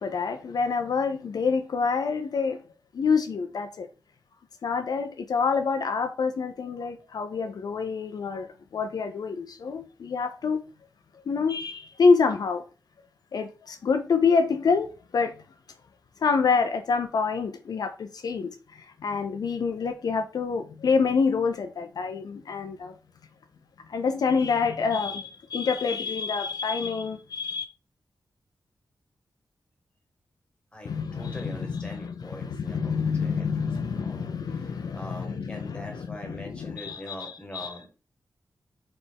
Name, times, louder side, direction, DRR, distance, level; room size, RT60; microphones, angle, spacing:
voice 1, 0.0-2.6 2.9-3.9 4.6-8.5 8.7-10.6 11.3-12.6 13.3-15.3 16.2-22.9 23.9-27.6 30.8-37.7, left 5 dB, 65° left, 0.4 m, -27 dB
voice 2, 30.7-33.5 33.8-37.9, left 1 dB, 15° left, 1.3 m, -42 dB
4.1 x 3.3 x 3.4 m
wide cardioid pair, 135°, 7 cm